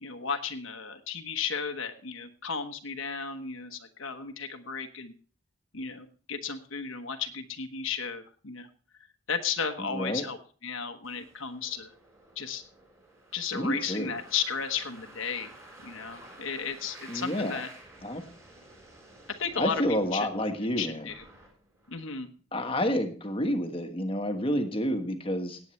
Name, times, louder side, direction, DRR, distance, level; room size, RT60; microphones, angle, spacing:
voice 1, 0.0-5.1 5.7-8.7 9.3-11.9 12.4-12.6 13.3-15.5 15.8-17.7 19.3-20.3 20.8-21.2 21.9-22.3, left 6 dB, 75° left, 6 dB, 1.2 m, -34 dB
voice 2, 9.8-10.3 13.5-14.1 17.1-17.6 18.0-18.2 19.6-21.1 22.5-25.6, equal, 25° left, 6 dB, 1.4 m, -29 dB
sound 1, 11.0-22.2, right 1 dB, 15° right, 3.7 m, -52 dB
18.0 x 8.4 x 3.2 m, 0.39 s
head